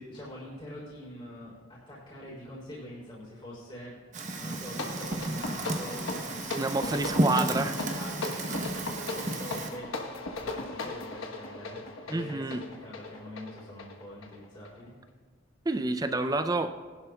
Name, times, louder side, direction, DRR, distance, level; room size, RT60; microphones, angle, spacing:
voice 1, 0.1-4.1 4.4-7.3 7.9-11.8 12.1-14.9, equal, 25° left, -7 dB, 3.5 m, -44 dB
Fire, 4.1-9.7, right 1 dB, 35° right, 0.9 m, -33 dB
sound 1, 4.5-14.8, left 2 dB, 80° left, 1.2 m, -38 dB
voice 2, 6.6-7.8 12.1-12.6 15.7-16.7, right 2 dB, 20° right, 9 dB, 0.4 m, -28 dB
19.5 x 11.5 x 2.3 m, 1.5 s
head